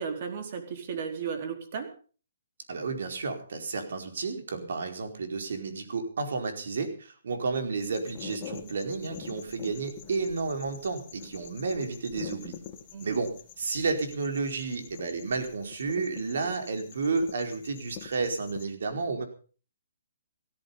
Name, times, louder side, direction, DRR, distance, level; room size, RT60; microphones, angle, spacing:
voice 1, 0.0-1.9 12.9-13.2, right 6 dB, 45° right, 6 dB, 4.1 m, -34 dB
voice 2, 2.7-12.6 13.0-19.2, right 4 dB, 70° right, 6 dB, 4.6 m, -31 dB
sound 1, 7.8-18.7, left 9 dB, 30° left, 2.3 m, -46 dB
16.5 x 14.5 x 5.6 m, 0.39 s
hypercardioid pair, 155°, 0 cm